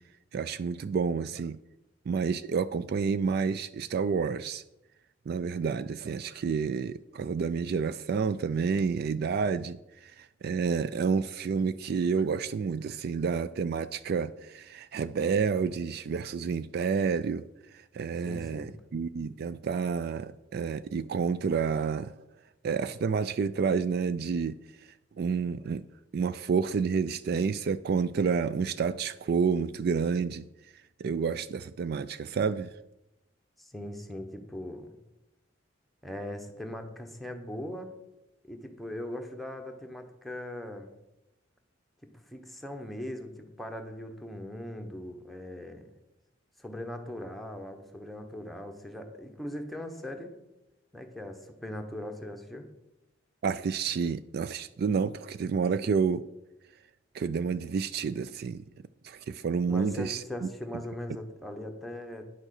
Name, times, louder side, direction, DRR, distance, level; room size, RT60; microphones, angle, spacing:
voice 1, 0.3-1.6 2.1-4.6 5.3-17.4 17.7-22.1 22.6-24.5 25.2-25.8 26.1-30.5 31.0-32.7 53.4-56.2 57.1-58.6 59.0-60.5, right 5 dB, 55° right, 0.3 m, -29 dB
voice 2, 18.2-18.7 33.6-34.9 36.0-38.0 38.4-40.9 42.0-45.9 46.6-50.4 50.9-52.7 59.7-62.2, left 1 dB, ahead, 1.0 m, -40 dB
9.8 x 6.3 x 6.5 m
head